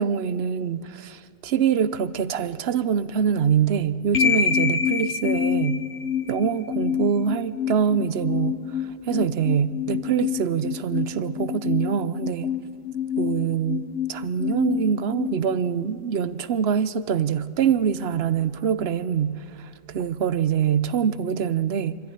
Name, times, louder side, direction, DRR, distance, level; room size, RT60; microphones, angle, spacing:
voice 1, 0.0-5.8 6.3-8.6 9.1-12.5 13.2-13.8 14.1-22.0, right 8 dB, 75° right, 15 dB, 1.0 m, -24 dB
sound 1, 4.1-16.2, left 8 dB, 85° left, 1.2 m, -27 dB
24.5 x 14.0 x 9.9 m, 2.5 s
omnidirectional pair, 1.1 m